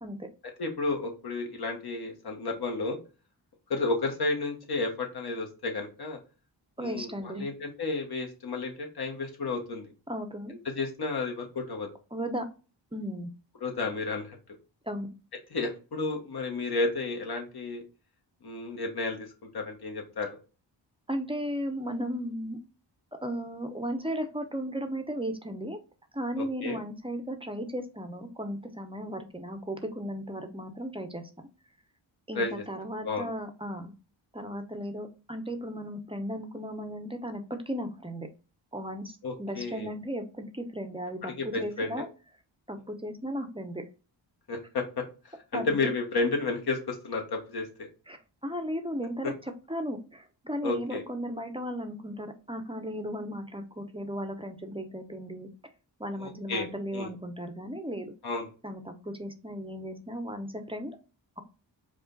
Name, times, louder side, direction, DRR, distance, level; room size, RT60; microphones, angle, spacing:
voice 1, 0.6-3.0 3.7-6.2 6.8-9.9 10.6-11.9 13.6-14.4 15.5-17.8 18.4-19.3 19.5-20.3 26.4-26.8 32.3-32.6 33.0-33.3 39.2-39.9 41.2-42.1 44.5-47.9 50.6-51.0 56.2-57.1 58.2-58.5, left 3 dB, 55° left, 2 dB, 1.4 m, -32 dB
voice 2, 6.8-7.5 10.1-10.5 12.1-12.4 12.9-13.3 14.8-15.1 21.1-22.6 23.2-25.8 26.1-31.3 32.3-33.9 34.3-38.3 38.7-42.1 42.7-43.8 45.5-45.9 48.1-48.2 48.4-49.3 49.7-55.5 56.0-58.1 58.6-60.9, equal, 10° right, 7 dB, 0.7 m, -35 dB
4.9 x 2.4 x 3.8 m, 0.34 s
cardioid pair, 70°, 45 cm